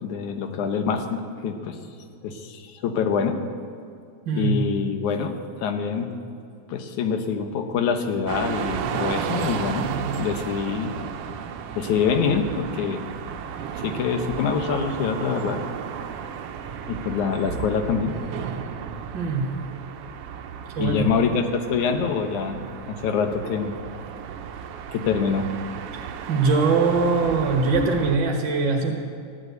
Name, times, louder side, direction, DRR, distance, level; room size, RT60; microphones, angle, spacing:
voice 1, 0.0-1.8 2.2-3.4 4.4-6.1 6.7-9.9 10.2-10.9 11.8-13.0 13.8-15.6 16.9-18.2 20.8-23.8 24.9-25.5, left 6 dB, 85° left, 6 dB, 2.5 m, -25 dB
voice 2, 4.2-4.6 19.1-19.5 20.7-21.1 26.3-28.9, right 4 dB, 50° right, 1 dB, 1.7 m, -22 dB
sound 1, 8.3-28.2, right 7 dB, 70° right, 1.5 m, -33 dB
15.0 x 11.0 x 8.0 m, 2.3 s
omnidirectional pair, 3.4 m